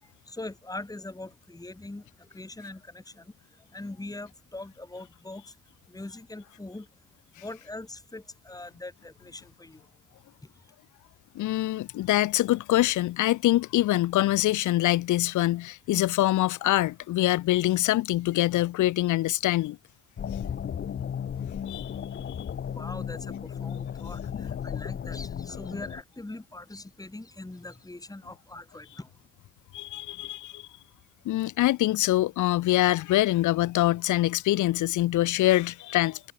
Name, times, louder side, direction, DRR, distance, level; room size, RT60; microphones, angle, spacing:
voice 1, 0.0-5.6 5.9-6.9 7.3-9.9 10.4-10.7 22.6-29.2, left 2 dB, 10° left, 4.0 m, -42 dB
voice 2, 11.3-19.8 21.7-21.9 29.7-30.7 31.2-36.2, left 16 dB, 80° left, 0.9 m, -24 dB
sound 1, 20.2-26.0, left 8 dB, 40° left, 0.8 m, -34 dB
cardioid pair, 90°, 30 cm